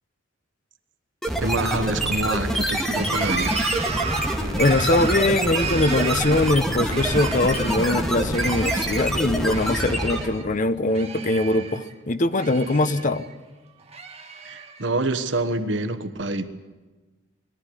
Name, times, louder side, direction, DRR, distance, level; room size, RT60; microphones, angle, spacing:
sound 1, 1.2-10.4, right 1 dB, ahead, 2.0 m, -25 dB
voice 1, 1.4-3.6 14.4-16.5, right 2 dB, 75° right, 9 dB, 1.3 m, -26 dB
sound 2, 2.9-8.0 8.3-9.1 9.5-10.5 10.7-11.9 12.3-13.3 13.8-14.8, right 5 dB, 35° right, 1.6 m, -33 dB
voice 2, 4.6-13.3, left 2 dB, 45° left, 12 dB, 0.8 m, -22 dB
21.5 x 13.5 x 9.8 m, 1.3 s
head